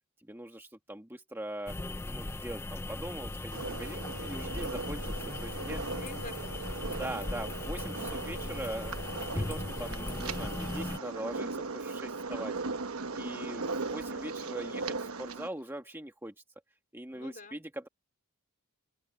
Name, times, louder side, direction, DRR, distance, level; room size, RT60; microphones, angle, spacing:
voice 1, 0.3-1.7 2.1-5.8 6.8-9.0 9.3-12.5 13.1-16.3 16.9-17.9, right 1 dB, 10° right, 1.3 m, -41 dB
sound 1, 1.7-11.0, left 2 dB, 10° left, 0.3 m, -38 dB
sound 2, 3.5-15.5, right 3 dB, 75° right, 1.1 m, -38 dB
voice 2, 5.8-7.4 17.1-17.6, left 2 dB, 40° left, 4.4 m, -49 dB
sound 3, 8.8-16.0, left 5 dB, 60° left, 7.2 m, -65 dB
head